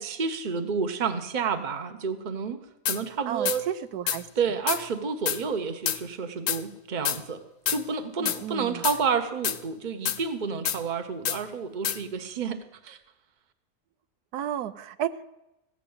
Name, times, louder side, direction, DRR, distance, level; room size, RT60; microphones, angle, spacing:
voice 1, 0.0-2.6 2.9-3.6 4.4-7.4 7.7-12.6 12.8-13.0, right 5 dB, 35° right, 8 dB, 1.0 m, -30 dB
sound 1, 2.9-3.0 3.5-3.6 4.1-4.2 4.7-4.8 5.3-5.4 5.9-6.0 6.5-6.6 7.1-7.2 7.7-7.8 8.3-8.4 8.8-9.0 9.4-9.6 10.1-10.2 10.7-10.8 11.3-11.4 11.8-12.0, left 10 dB, 65° left, 1.0 m, -27 dB
voice 2, 3.3-4.3 8.2-8.8 14.3-15.2, right 10 dB, 85° right, 13 dB, 1.2 m, -32 dB
15.0 x 7.4 x 8.7 m, 0.92 s
omnidirectional pair, 1.6 m